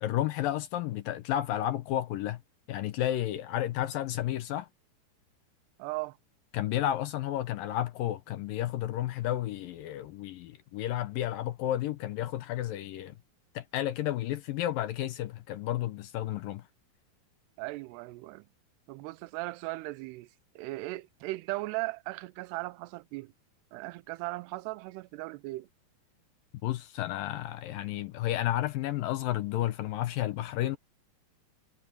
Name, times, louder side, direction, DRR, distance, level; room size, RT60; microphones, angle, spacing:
voice 1, 0.0-2.4 2.7-4.7 6.5-13.1 13.5-16.6 26.6-30.8, left 13 dB, 75° left, 2.2 m, -32 dB
voice 2, 5.8-6.2 17.6-18.5 18.9-20.3 20.6-23.3 23.7-25.7, right 21 dB, 90° right, 2.7 m, -37 dB
omnidirectional pair, 4.7 m